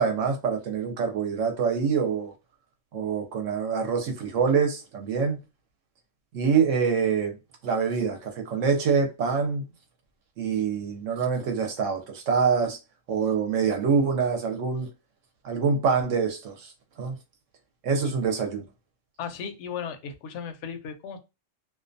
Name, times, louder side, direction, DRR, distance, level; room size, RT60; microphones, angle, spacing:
voice 1, 0.0-2.3 2.9-5.4 6.3-7.4 7.6-9.6 10.4-12.8 13.1-14.9 15.4-16.7 17.0-17.1 17.8-18.7, right 6 dB, 75° right, 1.0 m, -25 dB
voice 2, 19.2-21.2, left 7 dB, 70° left, 0.8 m, -36 dB
2.5 x 2.2 x 2.5 m
omnidirectional pair, 1.4 m